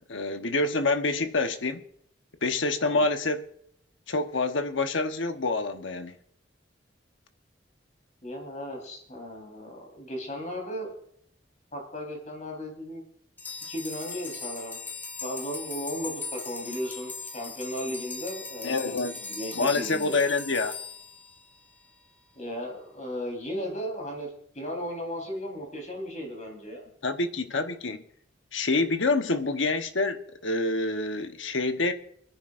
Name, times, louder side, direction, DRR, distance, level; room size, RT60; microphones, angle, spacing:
voice 1, 0.1-1.8 2.4-3.4 4.1-6.1 18.6-19.1 19.5-20.7 27.0-28.0 28.5-31.9, left 3 dB, 85° left, 1.1 m, -27 dB
voice 2, 8.2-10.9 11.7-13.0 13.7-14.8 15.2-18.9 19.2-20.2 22.3-26.9, equal, 40° left, 4.1 m, -36 dB
sound 1, 13.4-21.9, left 4 dB, 10° left, 1.0 m, -39 dB
25.5 x 10.5 x 2.6 m
head